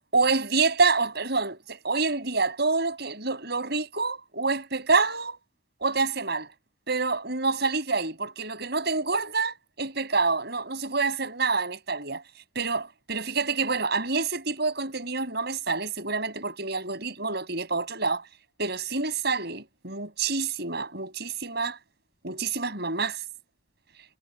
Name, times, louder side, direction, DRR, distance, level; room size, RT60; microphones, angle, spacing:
voice 1, 0.1-5.4 5.8-6.5 6.9-12.2 12.5-18.2 18.6-21.8 22.2-23.2, right 4 dB, 55° right, 6.8 m, -27 dB
head